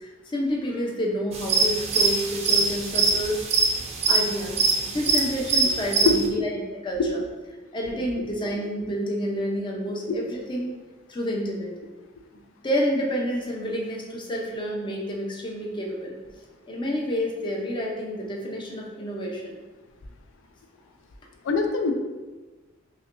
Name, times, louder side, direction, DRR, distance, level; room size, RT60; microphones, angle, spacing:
voice 1, 0.0-3.5 4.1-4.6 4.9-7.2 7.7-10.7 11.1-11.7 12.6-16.2 16.7-19.6, equal, 25° left, -1 dB, 0.5 m, -29 dB
sound 1, 1.3-6.3, right 4 dB, 35° right, 0.4 m, -23 dB
voice 2, 21.4-21.9, left 4 dB, 80° left, 5 dB, 0.4 m, -22 dB
5.5 x 2.2 x 2.5 m, 1.2 s
head